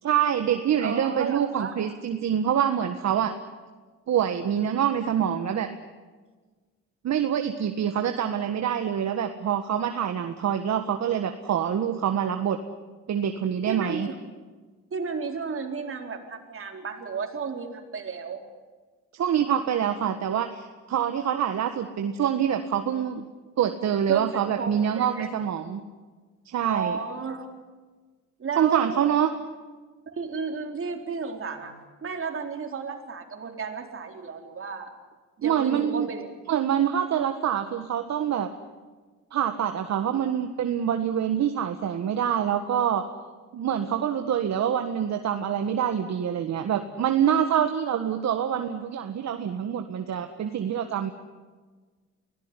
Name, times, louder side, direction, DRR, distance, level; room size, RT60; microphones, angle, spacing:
voice 1, 0.0-3.3 4.1-5.7 7.0-12.6 13.1-14.1 19.1-23.2 23.6-25.8 26.4-27.0 28.6-29.3 35.4-36.1 36.5-38.5 39.3-43.0 43.5-51.1, right 9 dB, 60° right, 7 dB, 1.6 m, -25 dB
voice 2, 0.8-1.7 13.7-14.2 14.9-18.4 24.1-25.3 26.7-27.5 28.4-29.0 30.1-31.7 32.0-34.9 35.4-36.3 46.6-46.7, right 5 dB, 45° right, 4 dB, 4.2 m, -33 dB
24.0 x 17.5 x 9.9 m, 1.4 s
cardioid pair, 90°, 30 cm